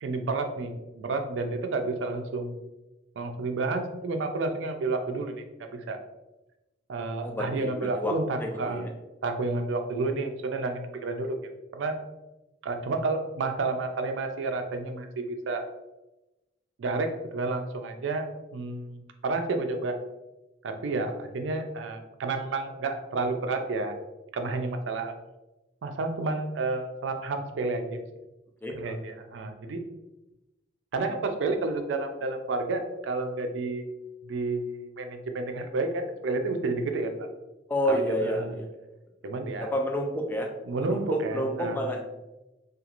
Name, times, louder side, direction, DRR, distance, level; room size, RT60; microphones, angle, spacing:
voice 1, 0.0-2.5 3.2-6.0 6.9-8.8 9.2-11.4 11.7-12.0 12.6-15.6 16.8-18.2 18.5-20.0 20.6-23.9 24.3-25.1 25.8-28.0 28.7-29.8 30.9-33.9 34.2-37.3 37.9-38.6 39.2-39.7 40.7-41.8, right 3 dB, 80° right, 6 dB, 0.4 m, -30 dB
voice 2, 7.2-8.1 8.4-8.9 28.6-29.0 37.7-38.7 39.6-40.5 40.8-42.0, equal, 10° left, 1 dB, 0.4 m, -29 dB
2.9 x 2.4 x 2.4 m, 1.0 s
head